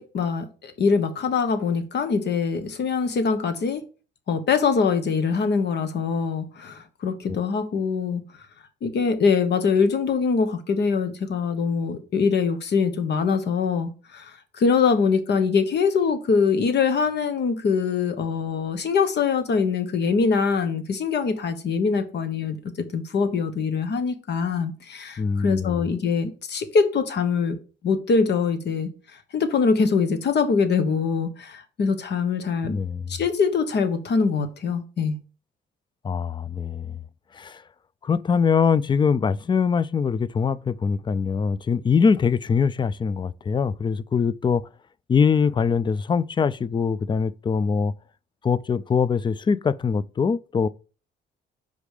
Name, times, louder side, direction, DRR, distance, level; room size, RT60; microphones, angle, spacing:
voice 1, 0.0-3.8 4.3-8.2 8.8-27.6 27.8-28.9 29.3-32.8 33.1-35.2, left 5 dB, 60° left, 1.1 m, -23 dB
voice 2, 25.2-25.9 32.7-33.1 36.0-37.0 37.3-37.6 38.0-44.7 45.1-47.9 48.4-50.7, left 6 dB, 25° left, 0.4 m, -23 dB
5.2 x 5.0 x 4.9 m
cardioid pair, 90°, 20 cm